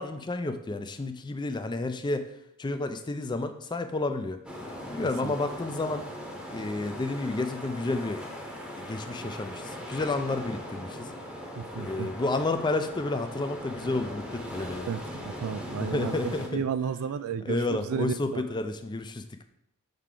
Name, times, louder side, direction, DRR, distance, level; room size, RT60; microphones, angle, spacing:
voice 1, 0.0-2.3 2.6-4.4 4.9-6.1 6.5-8.2 8.8-11.1 11.8-14.9 15.8-16.6 17.4-19.4, left 2 dB, 20° left, 8 dB, 0.4 m, -31 dB
sound 1, 4.4-16.5, equal, 5° right, 0.9 m, -39 dB
voice 2, 11.6-12.1 14.9-18.4, right 7 dB, 70° right, 14 dB, 0.3 m, -33 dB
6.6 x 4.6 x 3.7 m, 0.78 s
head